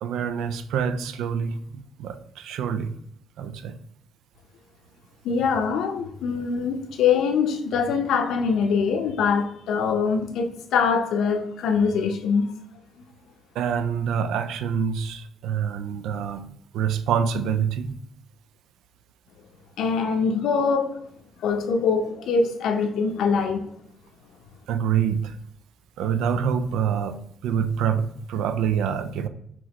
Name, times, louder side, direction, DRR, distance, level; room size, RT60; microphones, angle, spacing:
voice 1, 0.0-2.9 3.4-3.8 13.6-16.5 16.7-17.9 24.7-25.3 26.0-29.3, right 7 dB, 85° right, 0.4 m, -26 dB
voice 2, 5.2-12.5 13.0-13.1 19.8-21.0 21.4-23.6, left 5 dB, 80° left, 0.6 m, -23 dB
6.1 x 3.0 x 2.9 m
cardioid pair, 90°, 0 cm